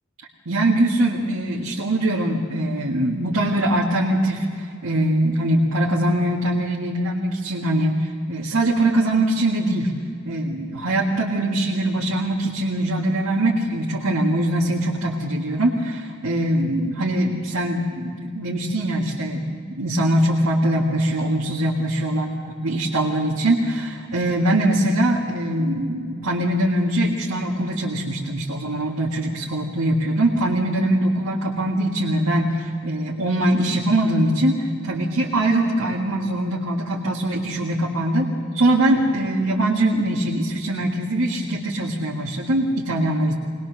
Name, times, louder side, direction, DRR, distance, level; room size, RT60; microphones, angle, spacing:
voice 1, 0.5-9.9 10.3-38.3 38.5-43.4, right 1 dB, 90° right, -3 dB, 1.9 m, -22 dB
22.5 x 20.0 x 6.3 m, 2.3 s
head